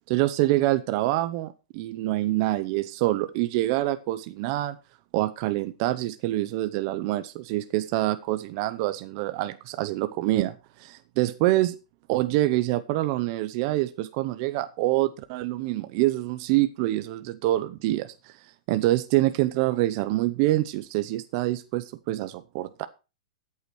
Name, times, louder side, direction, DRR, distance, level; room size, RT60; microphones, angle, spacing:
voice 1, 0.1-4.8 5.1-11.8 12.1-18.4 18.7-22.9, right 16 dB, 35° right, 0.7 m, -26 dB
13.5 x 8.4 x 4.7 m
supercardioid pair, 170°, 4 cm